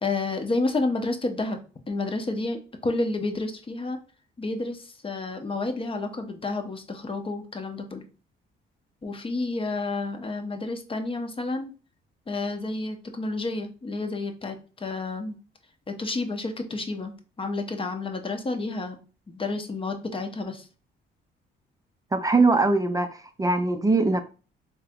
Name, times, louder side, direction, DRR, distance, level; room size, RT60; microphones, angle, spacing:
voice 1, 0.0-1.6 1.9-4.0 4.4-8.1 9.0-11.7 12.3-15.4 15.9-19.0 19.3-20.7, left 3 dB, 25° left, 0.7 m, -30 dB
voice 2, 22.1-24.2, right 3 dB, 15° right, 0.4 m, -22 dB
3.4 x 2.9 x 3.4 m
cardioid pair, 90°, 20 cm